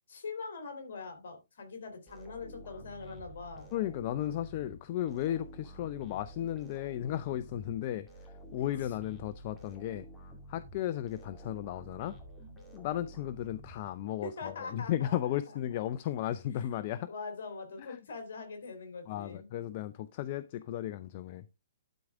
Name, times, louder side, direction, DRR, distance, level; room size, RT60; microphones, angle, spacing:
voice 1, 0.1-3.7 14.2-15.8 17.1-19.5, left 4 dB, 60° left, 3.3 m, -43 dB
sound 1, 2.1-14.3, right 1 dB, 15° left, 2.5 m, -51 dB
voice 2, 3.7-10.1 10.5-12.2 12.7-17.1 17.8-18.0 19.1-21.4, left 12 dB, 40° left, 0.5 m, -35 dB
12.0 x 4.8 x 3.6 m
figure-of-eight pair, 125°, 0 cm